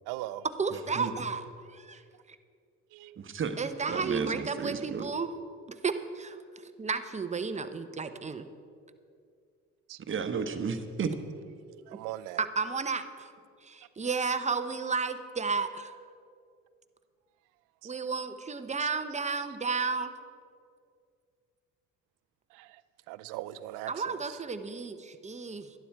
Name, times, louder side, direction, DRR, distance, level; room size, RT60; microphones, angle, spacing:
voice 1, 0.1-0.4 2.9-3.2 9.9-10.0 11.7-12.4 22.5-22.8 23.1-24.2, right 15 dB, 85° right, 16 dB, 0.5 m, -40 dB
voice 2, 0.6-1.4 1.7-2.0 3.6-5.3 5.8-6.4 6.8-8.4 12.4-13.3 13.6-15.9 17.8-20.1 23.9-25.7, right 4 dB, 20° right, 10 dB, 0.8 m, -32 dB
voice 3, 3.9-4.3 4.6-5.0 10.1-11.1, right 6 dB, 40° right, 8 dB, 1.1 m, -32 dB
11.5 x 11.5 x 4.6 m, 2.3 s
supercardioid pair, 75°, 31 cm